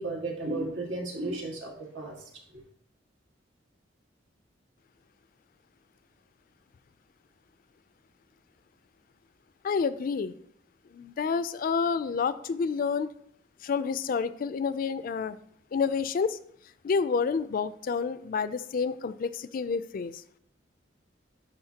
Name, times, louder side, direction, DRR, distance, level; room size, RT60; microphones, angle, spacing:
voice 1, 0.0-2.1, right 2 dB, 90° right, 0 dB, 1.6 m, -34 dB
voice 2, 9.6-10.3 10.9-13.1 13.6-15.4 15.7-16.4 16.8-20.1, left 5 dB, 50° left, 15 dB, 0.3 m, -29 dB
11.5 x 4.1 x 2.8 m, 0.66 s
head